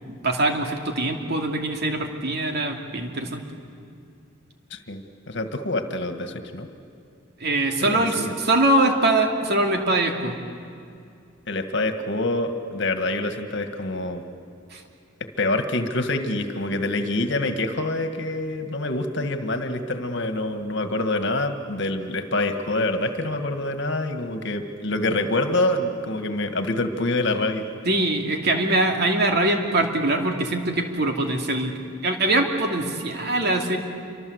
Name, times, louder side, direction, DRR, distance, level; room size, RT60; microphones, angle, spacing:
voice 1, 0.1-3.4 7.4-10.4 14.7-14.8 27.8-31.7 32.0-33.8, right 2 dB, 55° right, 3 dB, 2.7 m, -23 dB
voice 2, 4.7-6.7 7.8-8.4 11.5-14.2 15.4-27.7, left 2 dB, 65° left, 7 dB, 1.9 m, -26 dB
28.0 x 24.5 x 8.1 m, 2.4 s
head